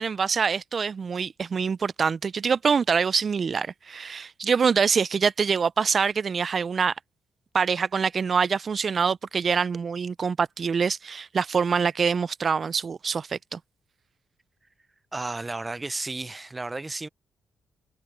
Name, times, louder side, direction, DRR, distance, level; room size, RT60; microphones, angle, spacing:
voice 1, 0.0-6.9 7.5-13.6, right 6 dB, 45° right, 0.5 m, -25 dB
voice 2, 15.1-17.1, right 2 dB, 20° right, 0.8 m, -33 dB
cardioid pair, 75°, 0 cm